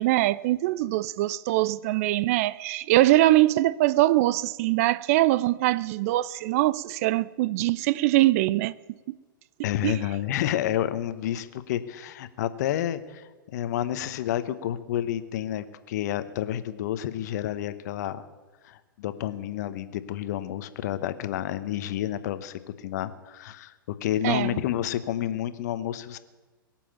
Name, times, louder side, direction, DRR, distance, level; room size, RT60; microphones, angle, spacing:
voice 1, 0.0-8.7 9.8-9.9 24.2-24.6, right 17 dB, 40° right, 0.4 m, -22 dB
voice 2, 9.6-18.2 18.6-23.7 24.0-26.2, left 12 dB, 50° left, 1.0 m, -30 dB
22.0 x 7.5 x 8.5 m
figure-of-eight pair, 105°, 12 cm